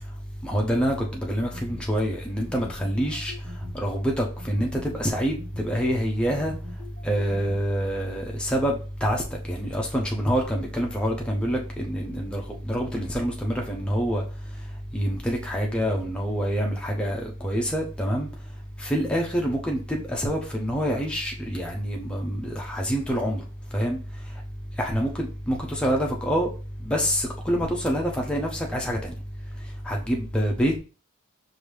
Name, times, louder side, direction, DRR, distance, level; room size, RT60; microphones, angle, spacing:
voice 1, 0.4-3.3 3.7-6.5 7.0-8.8 9.0-9.2 9.5-14.2 14.9-18.3 18.8-23.4 23.7-24.0 24.8-26.5 26.8-29.1 29.9-30.8, equal, 5° left, 0.6 m, -26 dB
sound 1, 1.2-1.9 2.4-3.8 4.4-5.7 6.3-7.6, left 2 dB, 65° right, 1.3 m, -42 dB
5.0 x 2.6 x 3.3 m
head